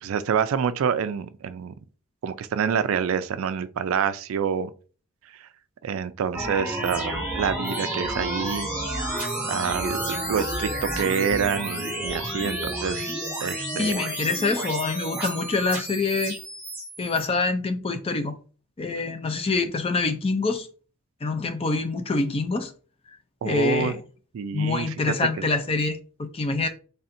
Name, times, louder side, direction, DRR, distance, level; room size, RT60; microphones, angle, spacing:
voice 1, 0.0-1.7 2.2-4.7 5.8-8.7 9.5-13.1 13.4-13.9 23.4-23.9 24.3-24.9, right 7 dB, 65° right, 0.3 m, -27 dB
sound 1, 6.3-17.2, right 1 dB, 5° right, 1.7 m, -30 dB
voice 2, 13.8-16.3 17.0-18.3 18.8-20.7 21.2-22.7 23.4-24.0 24.5-26.7, left 3 dB, 25° left, 0.4 m, -25 dB
4.2 x 3.3 x 2.6 m
head